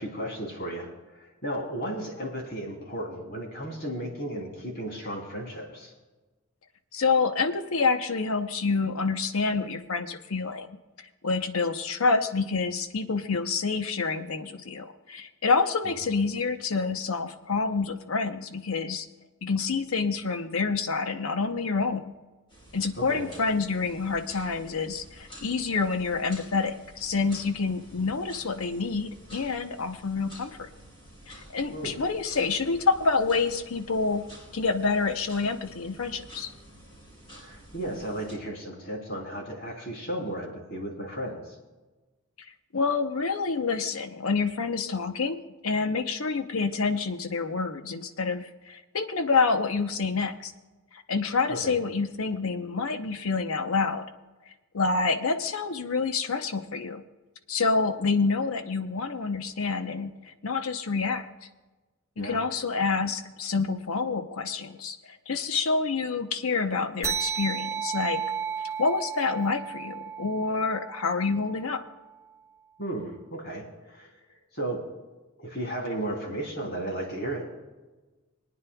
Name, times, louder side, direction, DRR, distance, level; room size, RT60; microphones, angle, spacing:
voice 1, 0.0-5.9 15.8-16.1 23.0-23.3 31.7-32.0 37.4-41.6 51.5-51.8 62.2-62.5 72.8-74.1 74.5-74.9 75.4-77.5, right 1 dB, 50° left, 0 dB, 3.1 m, -34 dB
voice 2, 6.9-10.7 11.2-19.1 19.4-22.1 22.7-30.5 31.3-34.2 34.5-36.5 42.7-50.5 50.9-54.1 54.7-57.0 57.5-60.1 60.4-61.3 62.2-65.0 65.3-68.2 68.8-71.8, left 4 dB, 85° left, 8 dB, 0.8 m, -27 dB
sound 1, 22.5-38.3, equal, 25° left, 3.4 m, -50 dB
sound 2, 67.0-71.9, right 7 dB, 15° right, 0.9 m, -33 dB
26.0 x 9.5 x 2.3 m, 1.2 s
head